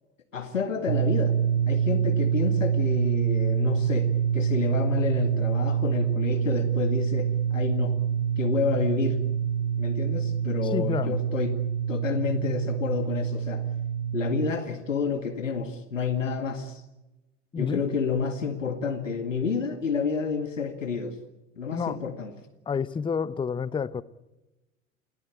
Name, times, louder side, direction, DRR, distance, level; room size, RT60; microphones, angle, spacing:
voice 1, 0.3-1.3 1.7-4.1 4.3-8.0 8.4-9.2 9.8-11.5 11.9-13.6 14.1-16.8 17.6-21.2 21.6-22.3, left 5 dB, 80° left, 2.0 m, -29 dB
sound 1, 0.9-14.5, right 8 dB, 65° right, 0.9 m, -26 dB
voice 2, 10.6-11.2 17.5-17.8 21.7-22.0 22.7-24.0, left 6 dB, 15° left, 0.8 m, -29 dB
28.5 x 17.5 x 8.7 m
figure-of-eight pair, 75°, 38 cm